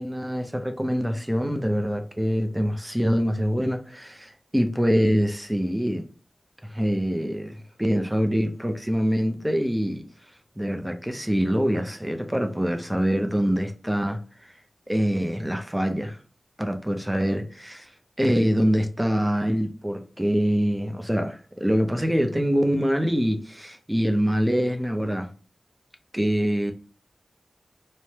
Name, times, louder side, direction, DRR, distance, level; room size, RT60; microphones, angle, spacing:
voice 1, 0.0-6.1 6.6-10.0 10.6-14.5 14.9-16.2 16.6-17.9 18.2-25.3 26.1-26.7, equal, 10° right, 0.5 m, -25 dB
3.2 x 2.1 x 2.8 m
wide cardioid pair, 55°, 0 cm